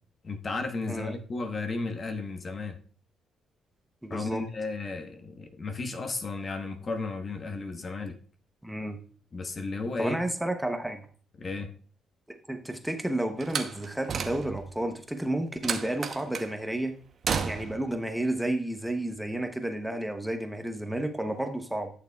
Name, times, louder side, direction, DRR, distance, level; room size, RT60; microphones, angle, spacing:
voice 1, 0.2-2.8 4.1-8.2 9.3-10.2 11.4-11.7, left 3 dB, 40° left, 1.1 m, -34 dB
voice 2, 0.9-1.2 4.0-4.5 8.6-9.0 10.0-11.0 12.3-16.9 17.4-21.9, right 1 dB, 5° right, 0.9 m, -31 dB
Slam, 13.4-14.8 15.6-16.5 17.2-17.9, right 6 dB, 55° right, 0.8 m, -32 dB
11.0 x 6.7 x 2.3 m
cardioid pair, 90°, 0 cm